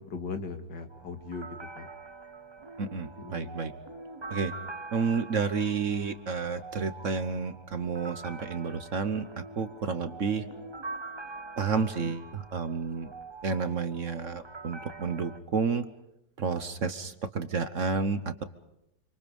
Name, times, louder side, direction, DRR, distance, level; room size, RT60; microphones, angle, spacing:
voice 1, 0.0-1.5 1.8-1.9 3.2-3.6, left 4 dB, 75° left, 7 dB, 2.6 m, -38 dB
sound 1, 0.9-15.4, right 3 dB, 25° right, 0.6 m, -44 dB
voice 2, 2.8-3.7 4.3-4.5 4.9-9.2 9.6-10.4 11.6-13.1 13.4-15.8 16.4-18.4, right 5 dB, 50° right, 11 dB, 1.3 m, -30 dB
27.0 x 25.5 x 5.4 m, 0.83 s
omnidirectional pair, 1.9 m